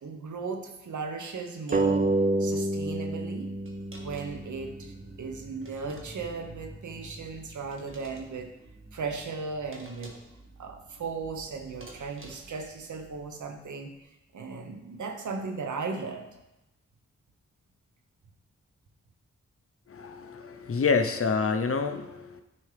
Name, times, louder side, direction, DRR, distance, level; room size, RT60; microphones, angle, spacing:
voice 1, 0.0-2.1 2.4-3.5 4.0-8.5 8.9-10.1 10.6-13.9 14.3-16.2, right 4 dB, 85° right, 5 dB, 0.9 m, -36 dB
sound 1, 1.7-4.9, right 2 dB, 30° right, 0.4 m, -28 dB
sound 2, 1.7-1.9 3.7-4.5 5.6-6.4 7.7-8.3 9.7-10.4 11.8-12.6, right 2 dB, 45° right, 1.4 m, -50 dB
sound 3, 3.4-13.9, right 1 dB, 60° right, 1.4 m, -51 dB
voice 2, 19.9-22.4, left 5 dB, 50° left, 7 dB, 0.6 m, -27 dB
9.7 x 4.6 x 3.3 m, 0.95 s
cardioid pair, 60°, 29 cm